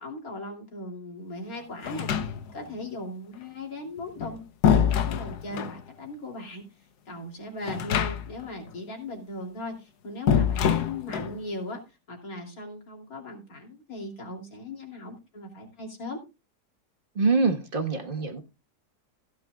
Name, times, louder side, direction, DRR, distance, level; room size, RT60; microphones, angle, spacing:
voice 1, 0.0-6.6 7.1-11.8 12.1-16.2, left 1 dB, 60° left, 3.3 m, -38 dB
sound 1, 1.8-2.7 4.0-5.8 7.6-8.5 8.7-8.8 10.3-11.4, left 8 dB, 75° left, 1.4 m, -25 dB
voice 2, 17.2-18.4, right 4 dB, 35° right, 1.4 m, -24 dB
16.0 x 10.0 x 2.3 m
omnidirectional pair, 1.7 m